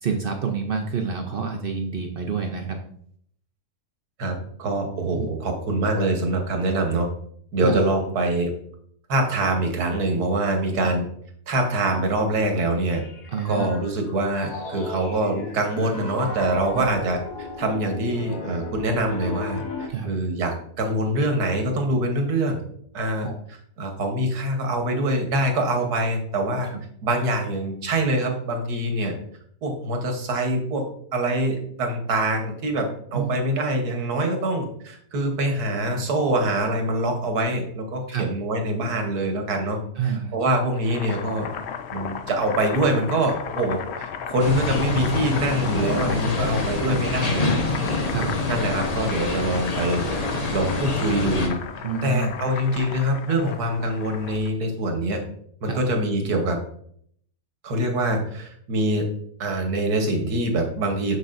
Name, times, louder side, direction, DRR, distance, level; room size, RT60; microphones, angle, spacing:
voice 1, 0.0-2.8 5.1-5.3 7.6-7.8 10.8-10.9 13.3-13.6 16.7-16.8 19.9-20.1 23.2-23.3 26.7-26.8 33.1-33.3 38.1-38.3 40.0-40.4 46.9-47.0 48.1-48.4 51.8-52.4 55.7-55.8, right 6 dB, 60° right, 3 dB, 0.6 m, -28 dB
voice 2, 4.6-7.1 7.5-8.5 9.1-11.0 11.5-13.0 13.4-22.6 22.9-23.3 23.8-26.7 27.0-29.1 29.6-41.5 41.9-47.9 48.5-50.0 50.5-51.6 52.0-55.2 55.6-56.6 57.6-59.1 59.4-61.2, right 1 dB, 85° right, 4 dB, 1.7 m, -24 dB
Piano, 12.9-19.9, left 3 dB, 90° left, 1.6 m, -35 dB
Boiling, 40.7-54.5, left 7 dB, 65° left, 0.7 m, -35 dB
sound 1, 44.4-51.5, left 3 dB, 30° left, 0.8 m, -26 dB
6.7 x 6.4 x 2.5 m, 0.65 s
omnidirectional pair, 1.6 m